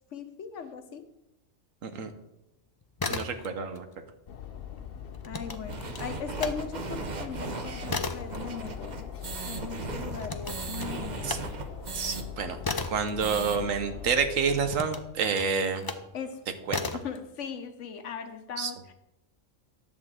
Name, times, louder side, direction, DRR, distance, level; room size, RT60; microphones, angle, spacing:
voice 1, 0.1-1.1 5.3-9.1 9.5-11.4 16.1-16.5 16.9-18.9, left 6 dB, 70° left, 8 dB, 1.2 m, -39 dB
sound 1, 2.8-3.8 4.1-6.6 7.0-14.0 14.6-16.1 16.7-17.2, left 3 dB, 40° left, 0.3 m, -36 dB
voice 2, 3.1-3.9 11.2-11.4 11.9-12.6 12.9-15.9 16.7-16.8 18.6-18.7, right 6 dB, 85° right, 8 dB, 1.3 m, -28 dB
sound 2, 4.3-14.8, left 8 dB, 55° left, 0.8 m, -42 dB
sound 3, 5.7-12.2 12.6-12.7 13.0-13.6, right 4 dB, 40° right, 0.9 m, -37 dB
10.5 x 4.2 x 7.3 m, 0.90 s
omnidirectional pair, 1.3 m